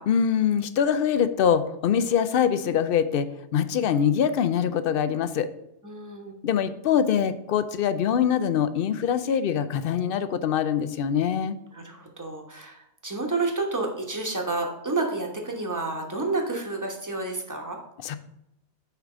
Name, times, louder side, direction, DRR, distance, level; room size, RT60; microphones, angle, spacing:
voice 1, 0.1-3.3 3.5-5.5 6.4-11.6 18.0-18.2, left 8 dB, 60° left, 12 dB, 0.6 m, -23 dB
voice 2, 5.8-6.4 11.7-17.8, right 3 dB, 15° right, 1 dB, 1.1 m, -30 dB
6.5 x 4.8 x 4.9 m, 0.83 s
omnidirectional pair, 1.2 m